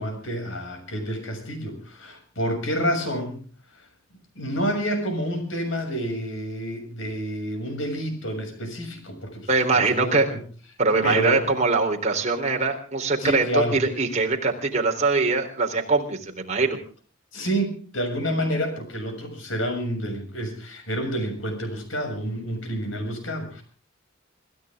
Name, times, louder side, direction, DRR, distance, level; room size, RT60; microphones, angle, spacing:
voice 1, 0.0-3.4 4.4-10.4 11.0-11.5 13.2-13.8 17.3-23.6, equal, 70° left, 5 dB, 6.9 m, -29 dB
voice 2, 9.5-10.3 10.8-16.8, right 3 dB, 35° right, 2 dB, 3.7 m, -22 dB
26.5 x 14.5 x 3.6 m, 0.40 s
head